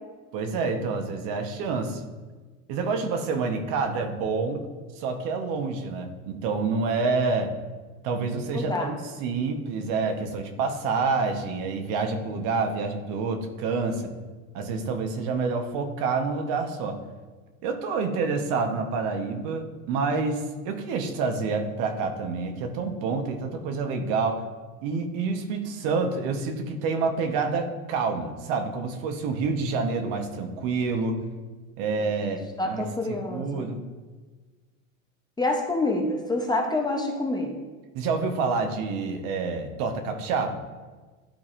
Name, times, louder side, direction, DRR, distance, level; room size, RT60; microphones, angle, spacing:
voice 1, 0.3-2.0 2.7-4.6 5.0-7.5 8.0-14.1 14.5-17.0 17.6-24.4 24.8-31.2 31.8-32.8 33.3-33.8 37.9-40.5, right 4 dB, 55° right, 6 dB, 1.1 m, -28 dB
voice 2, 8.5-8.9 32.6-33.6 35.4-37.5, left 2 dB, 10° left, 1 dB, 0.7 m, -27 dB
11.5 x 4.1 x 2.6 m, 1.3 s
hypercardioid pair, 105°, 41 cm